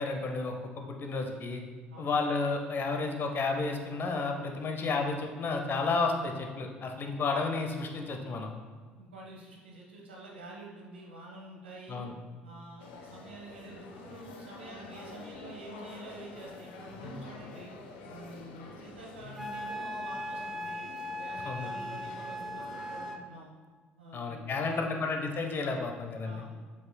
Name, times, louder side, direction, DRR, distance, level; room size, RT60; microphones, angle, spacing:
voice 1, 0.0-1.6 2.0-8.5 11.9-12.1 21.4-21.7 24.1-26.4, left 3 dB, 35° left, 3 dB, 0.8 m, -32 dB
voice 2, 9.0-12.0 12.4-17.7 18.1-23.5 24.0-25.0 26.2-26.5, right 2 dB, 75° right, -2 dB, 1.0 m, -48 dB
sound 1, 12.8-23.1, left 3 dB, 65° left, 0.6 m, -47 dB
Wind instrument woodwind instrument, 19.4-23.2, equal, ahead, 0.5 m, -38 dB
7.6 x 5.8 x 2.2 m, 1.5 s
figure-of-eight pair, 55°, 6 cm